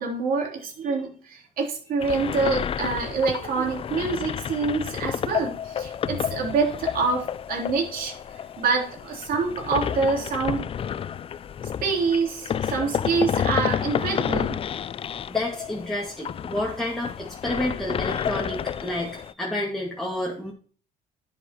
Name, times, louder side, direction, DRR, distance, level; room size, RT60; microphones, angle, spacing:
voice 1, 0.0-8.1 8.6-10.7 11.8-14.6, right 4 dB, 60° right, 0 dB, 3.7 m, -26 dB
sound 1, 2.0-19.3, left 8 dB, 35° left, 0.4 m, -30 dB
voice 2, 15.3-20.5, left 1 dB, ahead, -3 dB, 2.0 m, -30 dB
10.0 x 9.2 x 3.0 m, 0.43 s
cardioid pair, 110°, 17 cm